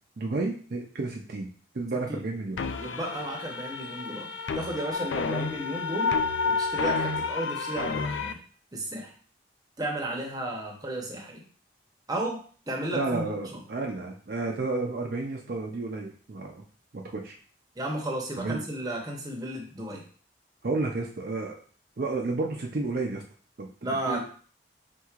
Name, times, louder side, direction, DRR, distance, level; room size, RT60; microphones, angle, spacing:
voice 1, 0.2-1.5 1.7-2.6 12.9-16.6 16.9-17.4 18.4-18.6 20.6-21.6 22.0-23.2 23.6-23.7 24.1-24.2, right 3 dB, 55° right, 0 dB, 0.5 m, -31 dB
sound 1, 2.6-8.3, left 4 dB, 85° left, 0.4 m, -30 dB
voice 2, 2.8-4.3 4.5-6.2 6.4-8.4 8.7-9.1 9.8-11.4 12.1-13.6 17.8-20.0 23.8-24.2, right 1 dB, 20° right, 1 dB, 0.8 m, -33 dB
4.5 x 3.8 x 2.4 m, 0.44 s
head